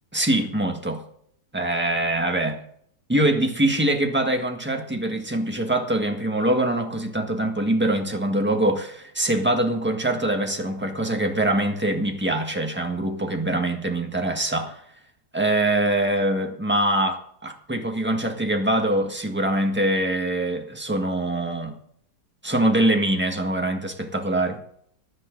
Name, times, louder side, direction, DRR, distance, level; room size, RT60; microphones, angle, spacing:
voice 1, 0.1-1.0 1.5-2.6 3.1-14.8 15.3-21.7 22.4-24.6, right 1 dB, 5° right, 3 dB, 1.5 m, -23 dB
15.0 x 11.0 x 3.9 m, 0.66 s
omnidirectional pair, 1.8 m